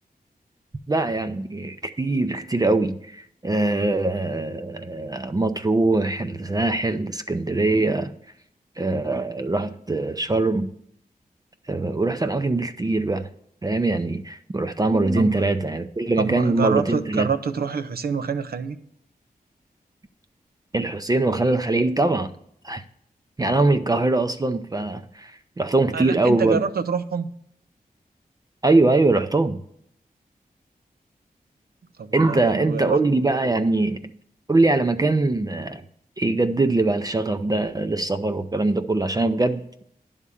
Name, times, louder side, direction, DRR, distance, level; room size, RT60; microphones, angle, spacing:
voice 1, 0.9-8.1 8.8-10.7 11.7-13.3 13.6-17.3 20.7-22.3 22.6-22.8 23.4-26.6 28.6-29.6 32.1-34.0 34.5-35.8 36.2-39.8, right 2 dB, 25° right, 0.5 m, -22 dB
voice 2, 16.2-18.8 25.9-27.3 32.0-33.0, right 6 dB, 80° right, 0.6 m, -26 dB
11.0 x 3.6 x 6.8 m
wide cardioid pair, 90°, 16 cm